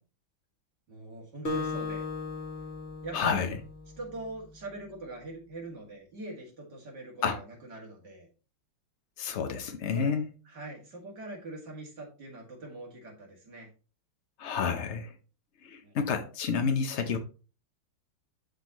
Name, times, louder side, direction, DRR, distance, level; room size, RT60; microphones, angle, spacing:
voice 1, 0.9-2.0 3.0-3.6 4.0-8.3 9.9-10.2 10.4-13.7 15.8-16.0, right 2 dB, 55° right, 2.8 m, -42 dB
Acoustic guitar, 1.4-4.2, left 4 dB, 35° left, 1.6 m, -37 dB
voice 2, 3.1-3.5 7.2-7.4 9.2-10.3 14.4-15.1 15.6-17.2, left 6 dB, 75° left, 0.6 m, -29 dB
11.5 x 3.9 x 3.0 m
omnidirectional pair, 2.2 m